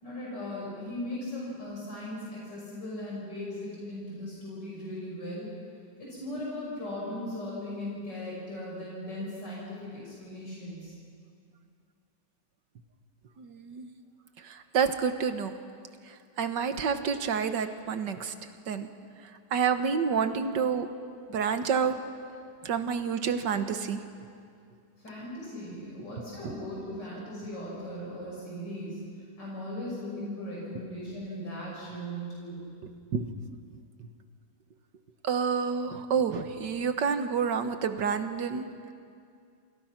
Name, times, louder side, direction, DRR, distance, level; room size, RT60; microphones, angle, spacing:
voice 1, 0.0-5.5 6.0-10.9 25.0-29.0 29.4-32.6, left 1 dB, 85° left, -5 dB, 6.7 m, -38 dB
voice 2, 13.4-13.9 14.4-15.5 16.1-18.3 18.7-18.9 19.5-20.9 21.3-22.0 22.6-24.0 26.4-26.6 33.1-33.3 34.0-34.1 35.2-38.7, right 6 dB, 90° right, 9 dB, 1.9 m, -29 dB
29.0 x 27.5 x 6.0 m, 2.4 s
omnidirectional pair, 1.8 m